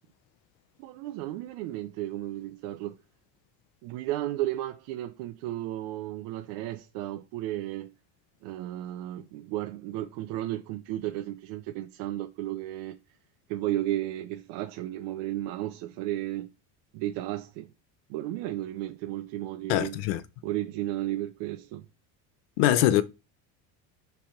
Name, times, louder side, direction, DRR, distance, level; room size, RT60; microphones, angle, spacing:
voice 1, 0.8-3.0 3.8-7.9 8.4-13.0 13.5-16.5 16.9-17.7 18.1-20.0 20.4-21.8, right 14 dB, 80° right, 0.7 m, -33 dB
voice 2, 19.7-20.2 22.6-23.0, left 13 dB, 85° left, 0.8 m, -22 dB
5.9 x 3.5 x 5.7 m
cardioid pair, 150°, 40 cm